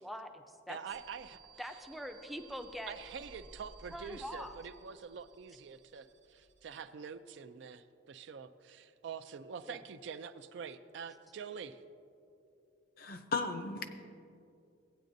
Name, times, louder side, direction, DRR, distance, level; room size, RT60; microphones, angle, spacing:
voice 1, 0.0-0.8 1.6-2.9 3.9-4.6 9.7-9.8, equal, ahead, 5 dB, 0.4 m, -43 dB
voice 2, 0.7-1.4 2.9-11.8, right 6 dB, 70° right, 11 dB, 0.4 m, -46 dB
sound 1, 0.9-6.7, right 3 dB, 90° right, 1.0 m, -58 dB
voice 3, 13.0-13.9, left 3 dB, 50° left, 7 dB, 0.6 m, -36 dB
15.5 x 9.1 x 2.6 m, 2.5 s
head